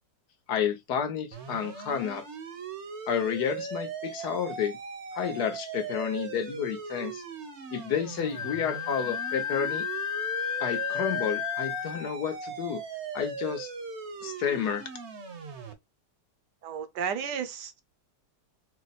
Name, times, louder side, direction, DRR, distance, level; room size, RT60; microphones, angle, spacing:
voice 1, 0.5-2.2 3.1-4.8 5.1-7.2 7.7-9.9 10.6-12.8 13.1-13.7 14.2-14.9, left 7 dB, 70° left, 1.3 m, -30 dB
sound 1, 1.3-15.7, right 5 dB, 50° right, 0.9 m, -39 dB
Wind instrument woodwind instrument, 8.3-12.0, left 9 dB, 85° left, 1.4 m, -32 dB
voice 2, 16.6-17.8, right 7 dB, 75° right, 1.3 m, -33 dB
4.5 x 2.1 x 4.1 m
omnidirectional pair, 1.9 m